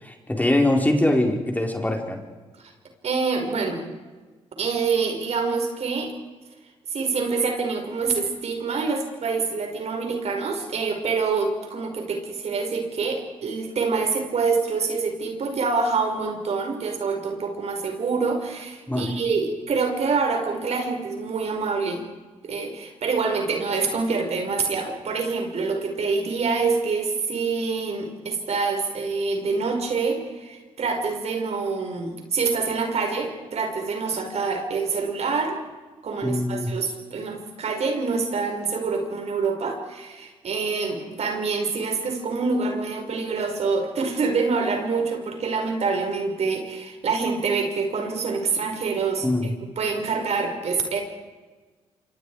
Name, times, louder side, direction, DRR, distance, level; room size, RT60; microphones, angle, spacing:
voice 1, 0.0-2.2 18.9-19.1 36.2-36.7 49.2-49.5, left 1 dB, 15° left, 2 dB, 4.3 m, -23 dB
voice 2, 3.0-3.8 4.6-6.1 6.9-22.0 22.4-35.6 36.0-49.3 49.8-51.0, right 4 dB, 60° right, 4 dB, 5.2 m, -26 dB
27.0 x 25.0 x 4.9 m, 1.3 s
supercardioid pair, 60°, 12 cm